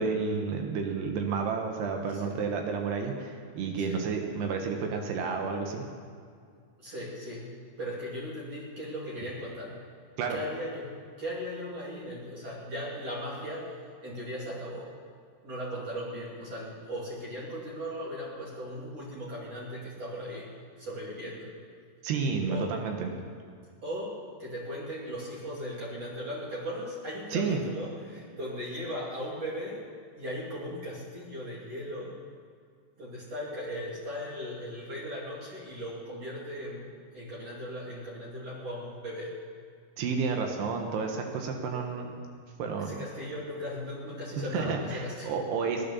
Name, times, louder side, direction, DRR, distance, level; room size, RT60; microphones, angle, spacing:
voice 1, 0.0-5.9 10.2-10.4 22.0-23.1 27.3-27.6 40.0-42.2 42.6-43.0 44.5-45.8, right 5 dB, 80° right, 3 dB, 3.3 m, -31 dB
voice 2, 6.8-9.9 10.3-13.8 14.0-14.9 15.4-20.5 20.8-21.5 22.5-22.7 23.8-29.8 30.2-32.1 33.0-36.8 37.1-39.3 42.8-45.3, equal, 40° right, -5 dB, 3.1 m, -38 dB
16.5 x 11.0 x 7.0 m, 2.1 s
omnidirectional pair, 4.8 m